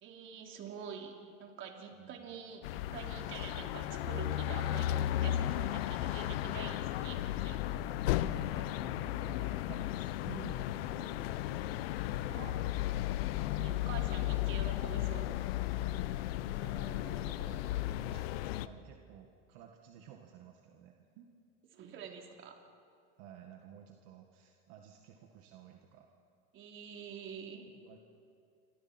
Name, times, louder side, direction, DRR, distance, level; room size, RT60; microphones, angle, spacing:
voice 1, 0.0-7.6 8.2-8.7 12.3-12.5 13.5-15.4 21.7-22.6 26.5-27.7, right 7 dB, 40° right, 2 dB, 3.5 m, -47 dB
voice 2, 2.0-2.4 8.6-11.9 16.0-16.2 16.5-21.3 23.2-26.1 27.8-28.0, right 9 dB, 60° right, 2 dB, 1.9 m, -53 dB
sound 1, 2.6-18.7, left 14 dB, 85° left, 0.9 m, -35 dB
29.0 x 25.0 x 4.5 m, 2.3 s
supercardioid pair, 135°, 29 cm